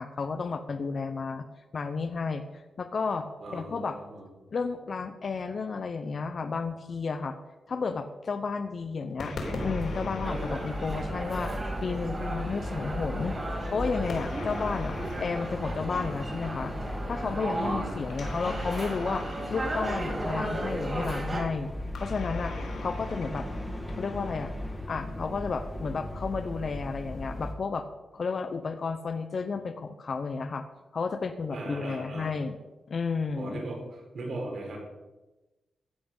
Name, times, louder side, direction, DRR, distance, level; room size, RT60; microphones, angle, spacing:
voice 1, 0.0-1.4 1.7-2.4 2.8-4.0 4.5-7.4 7.7-9.3 9.6-11.6 11.8-13.4 13.7-16.7 17.1-19.2 19.5-21.7 22.0-22.5 22.8-23.5 23.9-24.5 24.9-27.8 28.1-30.7 30.9-32.5 32.9-33.6, left 4 dB, 45° left, 9 dB, 0.8 m, -32 dB
voice 2, 3.4-4.3 17.5-17.9 31.5-32.3 33.4-34.8, right 2 dB, 60° right, 0 dB, 4.3 m, -38 dB
sound 1, 9.2-11.8 14.1-16.4 18.1-20.6 21.9-24.4, left 3 dB, 75° left, 3.6 m, -41 dB
sound 2, 9.4-27.5, equal, 5° left, 1.7 m, -37 dB
sound 3, 10.2-21.4, right 1 dB, 25° right, 3.2 m, -35 dB
15.5 x 8.5 x 5.5 m, 1.1 s
wide cardioid pair, 150°, 0 cm